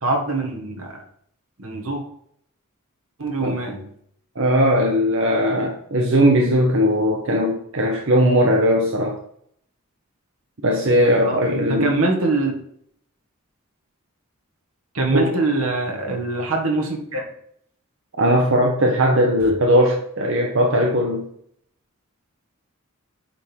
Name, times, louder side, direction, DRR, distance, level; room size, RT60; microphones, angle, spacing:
voice 1, 0.0-0.9 1.6-2.0 3.2-3.9 11.2-11.4 11.8-12.5 15.0-17.3, right 3 dB, 85° right, 2 dB, 1.7 m, -23 dB
voice 2, 4.3-9.2 10.6-12.0 15.1-15.3 18.2-21.3, equal, 65° right, 0 dB, 1.0 m, -18 dB
8.9 x 3.6 x 4.6 m, 0.68 s
head